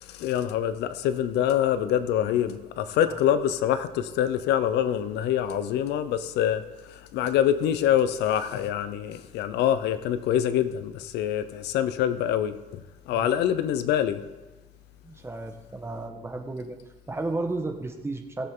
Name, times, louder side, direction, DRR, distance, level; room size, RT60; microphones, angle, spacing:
voice 1, 0.0-14.2, left 10 dB, 85° left, 12 dB, 0.7 m, -25 dB
voice 2, 15.0-16.8 17.1-18.5, right 2 dB, 15° right, 4 dB, 1.4 m, -33 dB
18.5 x 7.9 x 3.8 m, 1.2 s
cardioid pair, 110°, 17 cm